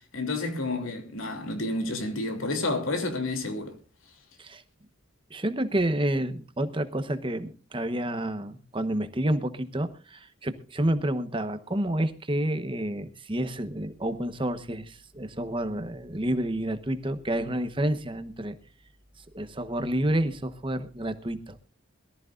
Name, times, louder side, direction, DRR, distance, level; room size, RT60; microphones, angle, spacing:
voice 1, 0.1-3.8, left 2 dB, 85° left, 2.9 m, -30 dB
voice 2, 5.3-18.5 19.3-21.6, right 1 dB, 25° right, 1.1 m, -29 dB
22.5 x 14.0 x 2.5 m
head